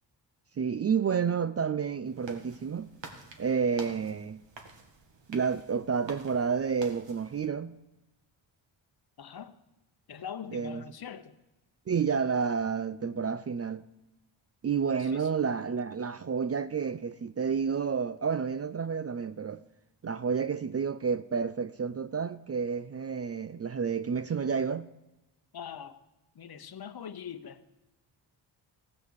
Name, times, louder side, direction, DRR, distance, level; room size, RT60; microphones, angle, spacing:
voice 1, 0.6-2.9 3.4-4.4 5.3-7.8 10.5-10.8 11.9-13.9 14.6-19.6 20.0-24.9, right 6 dB, 35° right, 0.4 m, -30 dB
sound 1, 2.1-7.5, right 3 dB, 65° right, 2.0 m, -49 dB
voice 2, 9.2-9.5 10.1-11.4 14.7-15.3 25.5-26.0 26.3-27.6, left 8 dB, 50° left, 1.0 m, -42 dB
16.5 x 6.8 x 6.6 m
cardioid pair, 70°, 47 cm